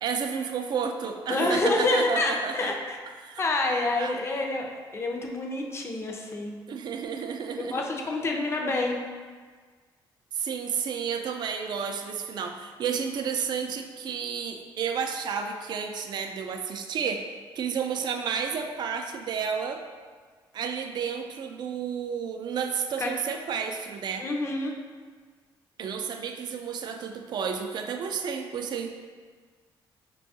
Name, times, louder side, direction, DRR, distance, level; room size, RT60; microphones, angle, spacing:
voice 1, 0.0-2.7 3.2-3.5 4.0-4.1 6.7-7.8 10.3-17.3 17.6-19.8 20.5-24.3 25.8-29.1, right 6 dB, 55° right, 5 dB, 0.3 m, -31 dB
voice 2, 1.3-3.0 3.4-6.6 7.6-9.0 23.0-23.1 24.2-24.8, left 2 dB, 30° left, 1 dB, 0.5 m, -27 dB
5.2 x 2.3 x 2.7 m, 1.5 s
cardioid pair, 105°, 9 cm